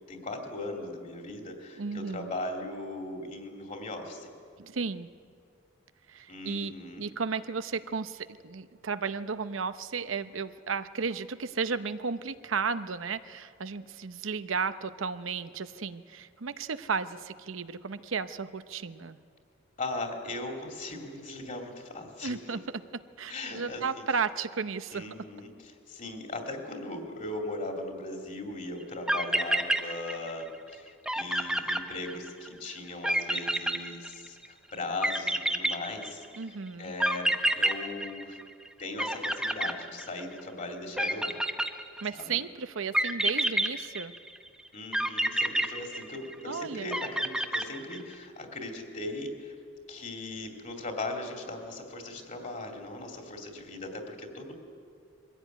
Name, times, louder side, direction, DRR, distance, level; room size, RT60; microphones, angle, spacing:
voice 1, 0.1-4.3 6.3-7.1 19.8-22.4 23.3-23.8 24.9-36.2 36.8-38.4 38.8-41.4 42.1-42.4 44.7-49.5 49.9-54.5, left 2 dB, 40° left, 2 dB, 2.7 m, -38 dB
voice 2, 1.8-2.3 4.6-5.1 6.1-19.2 22.2-25.0 36.4-36.9 42.0-44.1 46.4-46.9, right 5 dB, 85° right, 12 dB, 0.8 m, -34 dB
sound 1, 28.8-28.9 29.1-30.4 30.7-30.8 31.1-32.5 33.0-34.5 35.0-36.4 37.0-38.7 39.0-40.4 41.0-42.2 42.9-44.4 44.9-46.5 46.9-48.1, right 1 dB, 5° right, 0.9 m, -28 dB
22.0 x 15.5 x 9.2 m, 2.2 s
head